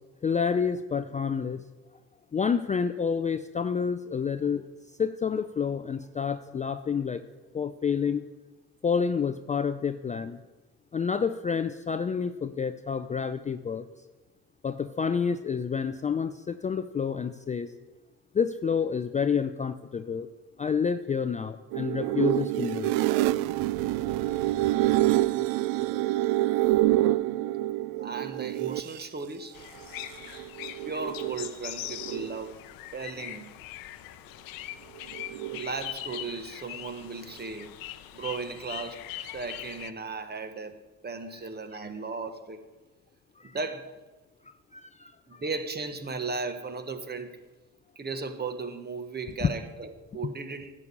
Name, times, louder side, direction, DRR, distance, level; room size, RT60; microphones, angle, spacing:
voice 1, 0.2-1.6 2.3-4.7 5.0-7.2 7.5-8.3 8.8-10.4 10.9-13.9 14.6-17.7 18.3-20.3 20.6-22.9 28.0-28.1 43.4-43.6 44.5-45.4 49.4-49.5, left 6 dB, 20° left, 0.4 m, -29 dB
sound 1, 21.7-29.0 30.0-31.5 31.8-32.5 35.0-35.8, right 16 dB, 75° right, 0.5 m, -27 dB
voice 2, 28.0-29.6 30.8-32.6 32.9-33.5 35.5-37.7 38.1-42.6 43.4-43.9 45.3-47.4 48.0-50.7, right 4 dB, 30° right, 1.2 m, -36 dB
sound 2, 29.5-39.9, left 14 dB, 75° left, 0.6 m, -41 dB
10.5 x 5.5 x 8.5 m
supercardioid pair, 75°, 35 cm